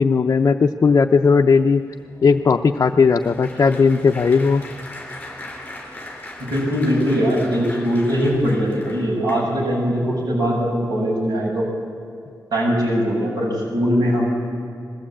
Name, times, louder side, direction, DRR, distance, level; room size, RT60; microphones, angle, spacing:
voice 1, 0.0-1.8 2.2-4.6, left 5 dB, 50° left, 2 dB, 0.6 m, -16 dB
Applause, 1.5-9.8 10.4-10.7 10.9-11.1, left 1 dB, 20° left, 4.1 m, -39 dB
voice 2, 6.4-11.7 12.5-14.3, equal, 75° right, -5 dB, 7.1 m, -21 dB
21.0 x 15.5 x 8.7 m, 2.4 s
wide cardioid pair, 160°, 7 cm